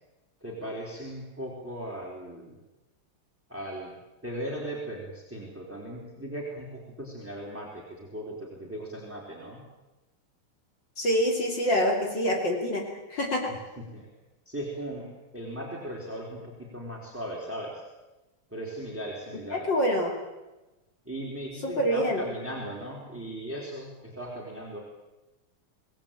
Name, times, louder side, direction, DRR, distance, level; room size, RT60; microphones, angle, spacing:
voice 1, 0.4-2.6 3.5-3.9 4.2-9.6 13.8-14.1 14.5-15.1 15.3-17.8 18.5-19.7 21.1-24.8, right 1 dB, 5° right, -2 dB, 4.2 m, -38 dB
voice 2, 11.0-13.5 19.5-20.1 21.6-22.2, equal, 55° left, 2 dB, 3.5 m, -26 dB
25.0 x 18.0 x 9.0 m, 1.1 s
omnidirectional pair, 2.4 m